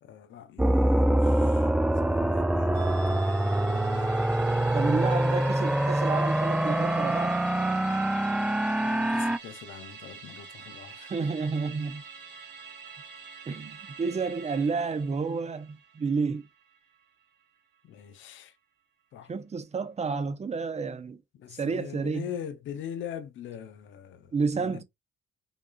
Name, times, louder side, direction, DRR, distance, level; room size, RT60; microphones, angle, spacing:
voice 1, 0.0-4.1 8.8-11.1 17.8-18.5 19.1-19.3 21.3-24.8, left 9 dB, 75° left, 0.7 m, -42 dB
sound 1, 0.6-9.4, right 1 dB, 5° right, 0.3 m, -25 dB
Musical instrument, 2.7-17.4 17.7-17.8, right 5 dB, 60° right, 1.8 m, -47 dB
voice 2, 4.7-7.4 11.0-12.0 13.5-16.4 19.3-21.2 21.5-22.3 24.3-24.8, right 4 dB, 35° right, 0.7 m, -30 dB
5.3 x 2.3 x 2.4 m
cardioid pair, 90°, 20 cm